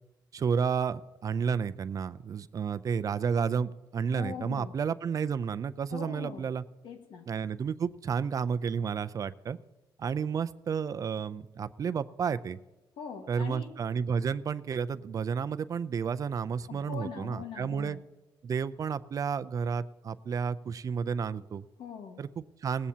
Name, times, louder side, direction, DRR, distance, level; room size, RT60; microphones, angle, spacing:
voice 1, 0.3-6.6 7.3-9.6 10.0-12.6 13.3-18.0 18.4-21.6 22.2-22.9, right 6 dB, 45° right, 14 dB, 0.5 m, -31 dB
voice 2, 4.1-4.8 5.9-6.5 6.8-7.3 13.0-13.7 16.7-18.0 21.8-22.2, left 6 dB, 75° left, 4 dB, 1.6 m, -41 dB
18.5 x 15.5 x 2.9 m, 1.1 s
cardioid pair, 115°, 8 cm